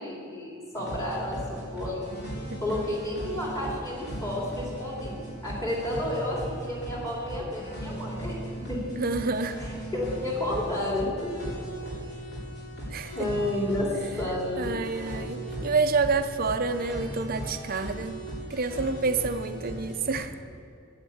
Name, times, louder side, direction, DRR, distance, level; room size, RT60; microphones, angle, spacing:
voice 1, 0.0-2.1 2.6-8.3 8.7-8.9 9.6-11.3 13.1-13.9 14.2-14.8, left 1 dB, 15° left, -4 dB, 2.8 m, -31 dB
sound 1, 0.7-20.2, right 1 dB, 50° left, 3.4 m, -38 dB
voice 2, 9.0-9.6 12.9-13.3 14.6-18.2 18.5-20.3, right 4 dB, 45° right, 9 dB, 0.6 m, -28 dB
9.4 x 8.1 x 8.5 m, 2.3 s
head